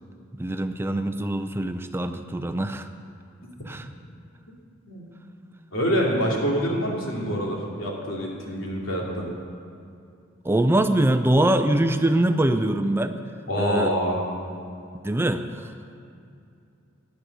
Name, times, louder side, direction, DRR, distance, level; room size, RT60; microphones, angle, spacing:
voice 1, 0.4-2.9 3.7-3.9 10.4-13.2 13.6-14.0 15.0-15.7, right 1 dB, 10° right, 8 dB, 0.5 m, -23 dB
voice 2, 5.7-9.3 13.5-14.2, equal, 80° left, -2 dB, 3.0 m, -26 dB
14.0 x 10.5 x 6.7 m, 2.5 s
head